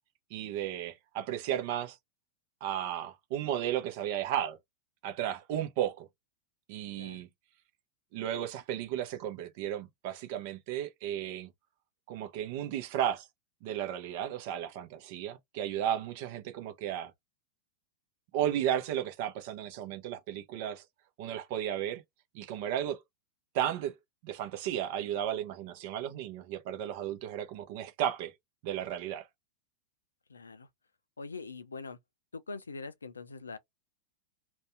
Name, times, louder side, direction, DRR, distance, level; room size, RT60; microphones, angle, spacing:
voice 1, 0.3-2.0 2.6-4.6 5.0-6.1 6.7-7.3 8.1-11.5 12.1-13.3 13.6-17.1 18.3-20.8 21.2-22.0 22.3-23.0 23.5-23.9 24.2-28.3 28.6-29.3, right 10 dB, 50° right, 0.7 m, -34 dB
voice 2, 30.3-30.7 31.2-32.0 32.3-33.6, left 4 dB, 75° left, 0.4 m, -43 dB
2.6 x 2.3 x 3.4 m
figure-of-eight pair, 90°, 0 cm